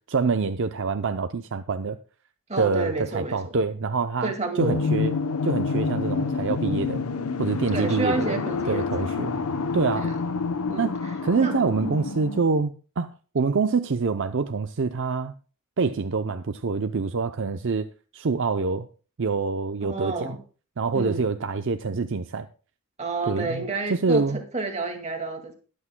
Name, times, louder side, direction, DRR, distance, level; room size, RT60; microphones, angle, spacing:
voice 1, 0.1-2.0 2.6-5.1 5.4-7.0 7.4-9.4 9.7-10.1 10.8-11.0 11.2-15.3 15.8-18.9 19.2-20.4 20.8-22.5 23.3-24.4, right 4 dB, 60° right, 0.6 m, -26 dB
voice 2, 2.5-3.6 4.2-4.9 7.7-8.8 9.9-10.1 10.7-11.1 11.4-11.5 11.8-11.9 19.8-20.4 20.9-21.2 23.0-25.5, right 3 dB, 30° right, 2.1 m, -30 dB
sound 1, 4.6-12.4, left 4 dB, 80° left, 0.8 m, -28 dB
22.0 x 8.6 x 2.2 m
head